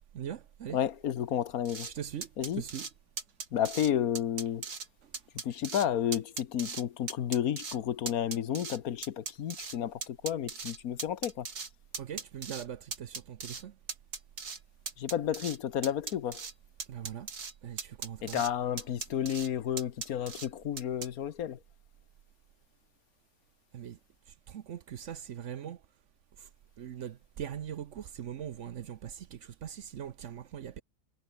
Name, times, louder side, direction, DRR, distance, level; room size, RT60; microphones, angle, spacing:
voice 1, 0.1-0.8 1.9-2.3 2.6-2.9 12.0-13.7 16.9-17.3 17.6-18.4 23.7-24.0 24.5-25.8 26.8-30.8, right 9 dB, 60° right, 1.0 m, -41 dB
voice 2, 0.7-1.9 2.4-2.6 3.5-4.6 5.4-11.5 15.0-16.4 18.2-21.6, left 9 dB, 70° left, 1.4 m, -31 dB
sound 1, 1.7-1.9 2.2-2.9 3.2-3.9 4.2-4.9 5.1-5.9 6.1-6.8 7.1-7.8 8.1-9.8 10.0-11.7 11.9-12.7 12.9-13.6 13.9-14.6 14.9-15.6 15.8-16.5 16.8-17.5 17.8-18.5 18.8-19.5 19.8-20.5 20.8-21.1, right 5 dB, 80° right, 3.1 m, -39 dB
omnidirectional pair, 1.6 m